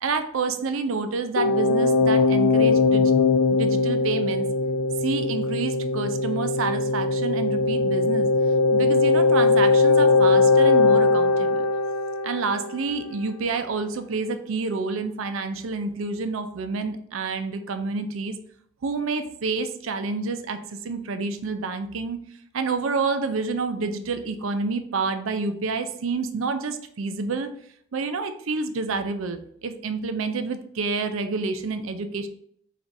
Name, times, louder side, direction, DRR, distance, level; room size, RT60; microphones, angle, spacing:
voice 1, 0.0-3.1 3.5-4.5 5.0-8.3 8.7-11.7 12.2-18.4 18.8-22.2 22.5-27.5 27.9-32.3, right 4 dB, 70° right, 8 dB, 0.5 m, -28 dB
sound 1, 1.4-13.0, left 3 dB, 70° left, 0.4 m, -20 dB
4.0 x 2.5 x 4.5 m, 0.66 s
head